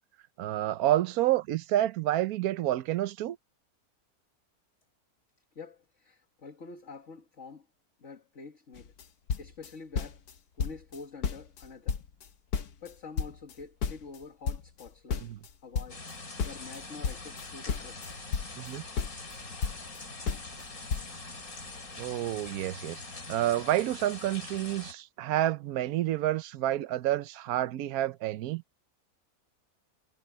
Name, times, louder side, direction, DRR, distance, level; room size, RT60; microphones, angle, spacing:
voice 1, 0.4-3.4 15.2-15.4 18.6-18.8 22.0-23.0 23.3-28.6, right 13 dB, 80° right, 1.2 m, -29 dB
voice 2, 5.5-7.7 8.0-8.9 9.4-10.2 10.6-12.0 12.8-15.3 15.6-16.0 16.4-18.1, left 4 dB, 55° left, 2.1 m, -47 dB
sound 1, 8.8-9.0 9.3-10.3 10.6-11.0 11.2-12.9 13.2-16.1 16.4-18.7 19.0-20.0 20.3-20.7 20.9-21.1, left 6 dB, 85° left, 1.6 m, -33 dB
sound 2, 15.9-24.9, left 3 dB, 70° left, 3.8 m, -43 dB
sound 3, 17.3-22.7, right 1 dB, 35° right, 6.7 m, -61 dB
omnidirectional pair, 1.6 m